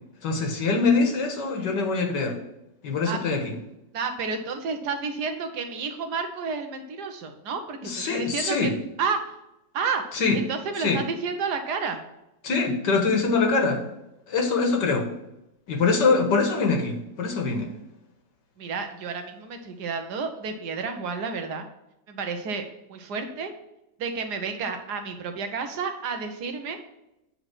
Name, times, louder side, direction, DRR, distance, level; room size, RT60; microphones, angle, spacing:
voice 1, 0.2-2.4 2.8-3.5 7.8-8.7 10.1-10.4 10.8-11.0 12.4-13.8 14.3-15.1 15.7-17.7, left 4 dB, 75° left, 2 dB, 2.0 m, -23 dB
voice 2, 3.9-8.7 9.0-9.3 9.7-12.0 18.6-21.6 22.1-23.5 24.0-26.8, right 5 dB, 70° right, 6 dB, 1.4 m, -31 dB
8.7 x 4.1 x 6.0 m, 0.88 s
omnidirectional pair, 1.9 m